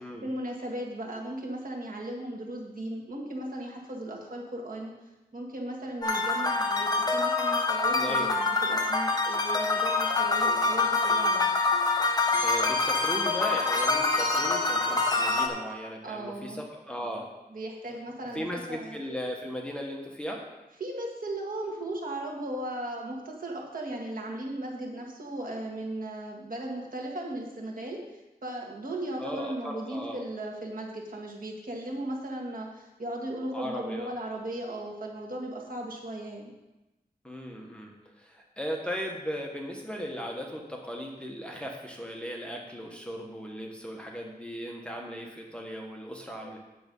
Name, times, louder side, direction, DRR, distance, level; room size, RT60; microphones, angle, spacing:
voice 1, 0.0-4.9 5.3-11.5 16.0-16.6 17.5-19.0 20.8-36.5 46.4-46.5, right 1 dB, 55° right, -1 dB, 1.9 m, -37 dB
sound 1, 6.0-15.5, left 3 dB, 25° left, 1.1 m, -26 dB
voice 2, 7.9-8.3 12.4-17.3 18.2-20.4 29.2-30.2 33.5-34.1 37.2-46.6, equal, 5° left, 0 dB, 1.3 m, -37 dB
8.9 x 6.9 x 5.4 m, 1.0 s
wide cardioid pair, 110°, 17 cm